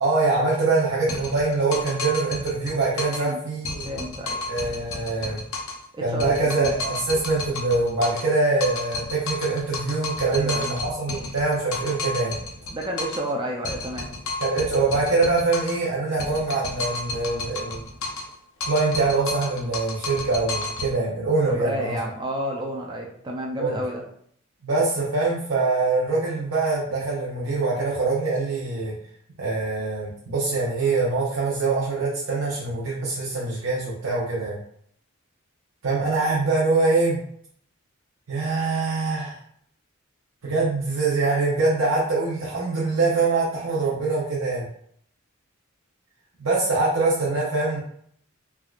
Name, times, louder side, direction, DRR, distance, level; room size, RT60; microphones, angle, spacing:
voice 1, 0.0-3.9 4.5-5.4 6.0-12.4 14.4-17.8 18.7-22.0 23.6-23.8 24.6-28.9 29.4-34.6 35.8-37.2 38.3-39.4 40.4-44.7 46.4-47.8, right 3 dB, 75° right, -6 dB, 0.7 m, -24 dB
sound 1, 1.1-3.3 3.6-5.9 6.2-8.3 8.6-13.3 13.6-15.9 16.2-18.3 18.6-20.9, left 3 dB, 70° left, 0.5 m, -32 dB
voice 2, 3.1-3.4 3.8-4.4 5.9-6.7 10.3-10.7 12.7-14.1 21.5-24.0, right 1 dB, 20° right, -1 dB, 0.3 m, -31 dB
3.4 x 2.3 x 2.3 m, 0.66 s
head